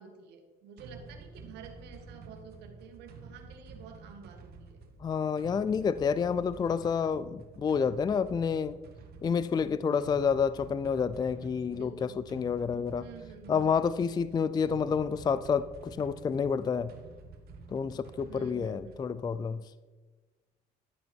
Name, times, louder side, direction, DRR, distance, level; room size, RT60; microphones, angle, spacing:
voice 1, 0.0-4.8 11.7-12.3 13.0-13.6 18.3-19.2, right 5 dB, 85° right, 2.0 m, -50 dB
sound 1, 0.8-19.2, right 4 dB, 65° right, 1.6 m, -50 dB
voice 2, 5.0-8.8 9.2-13.1 13.5-16.9 17.7-19.6, left 6 dB, 25° left, 0.4 m, -29 dB
12.5 x 9.2 x 4.5 m
cardioid pair, 110°, 17 cm